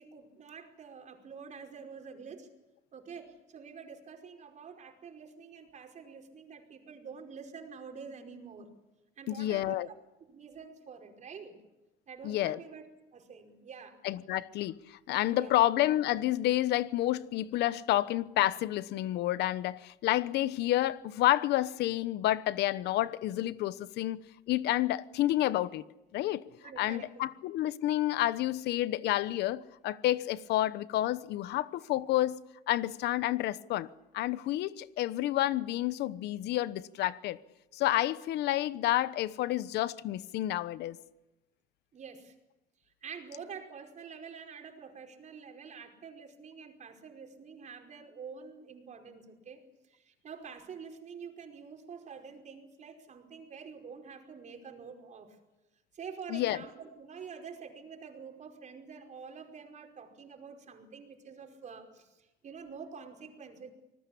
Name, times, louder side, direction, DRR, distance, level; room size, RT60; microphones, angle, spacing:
voice 1, 0.0-2.5 2.9-8.7 9.2-9.9 10.3-11.6 12.1-12.8 13.1-14.0 15.2-15.6 26.6-27.2 41.9-42.3 43.0-49.6 49.9-55.4 55.9-63.7, right 6 dB, 45° right, 5.1 m, -47 dB
voice 2, 9.3-9.9 12.2-12.6 14.0-14.7 15.1-24.2 24.5-25.8 26.1-26.4 26.8-32.4 32.7-33.9 34.1-37.4 37.7-41.0 56.3-56.6, left 14 dB, 80° left, 1.0 m, -29 dB
26.0 x 20.0 x 8.6 m
cardioid pair, 110°, 17 cm